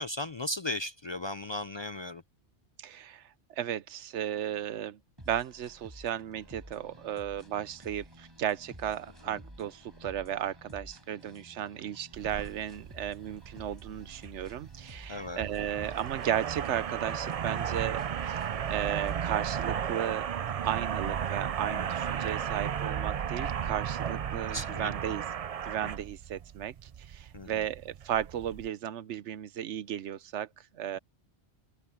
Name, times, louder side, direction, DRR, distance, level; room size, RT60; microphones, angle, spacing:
voice 1, 0.0-2.2 15.1-15.4 24.5-24.9 27.3-27.5, left 1 dB, 50° left, 0.3 m, -36 dB
voice 2, 2.8-5.0 5.3-20.3 20.6-25.2 25.6-31.0, right 10 dB, 90° right, 1.0 m, -35 dB
sound 1, 5.2-19.3, equal, 20° right, 6.8 m, -52 dB
sound 2, 12.1-28.7, right 8 dB, 50° right, 0.4 m, -35 dB
open air
omnidirectional pair, 1.1 m